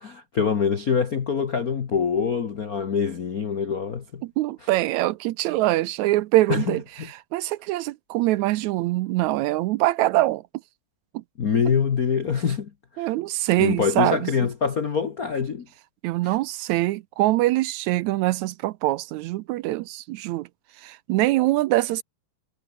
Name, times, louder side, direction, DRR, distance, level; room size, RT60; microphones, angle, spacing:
voice 1, 0.0-4.2 6.5-7.1 11.4-12.7 13.0-13.1 13.6-15.7 16.2-16.4, left 6 dB, 60° left, 0.9 m, -25 dB
voice 2, 4.2-10.4 11.1-11.2 13.0-14.3 16.0-20.5 20.8-22.0, right 17 dB, 80° right, 1.8 m, -23 dB
omnidirectional pair, 3.5 m